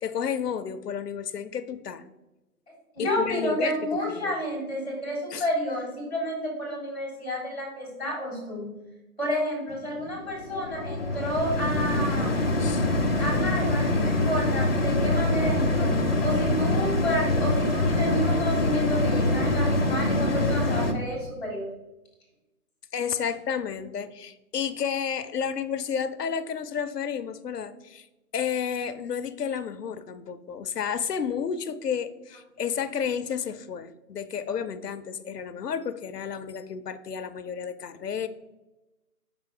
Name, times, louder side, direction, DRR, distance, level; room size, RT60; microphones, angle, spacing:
voice 1, 0.0-2.0 3.0-3.8 4.1-4.3 5.3-5.4 12.6-12.9 22.9-28.1 28.3-38.3, left 7 dB, 85° left, 10 dB, 0.6 m, -31 dB
voice 2, 2.9-8.7 9.2-12.4 13.2-15.9 16.2-21.7, equal, 5° right, -10 dB, 1.4 m, -30 dB
sound 1, 9.7-20.9, left 2 dB, 40° left, 0.7 m, -25 dB
5.8 x 4.4 x 3.8 m, 1.0 s
hypercardioid pair, 180°, 46 cm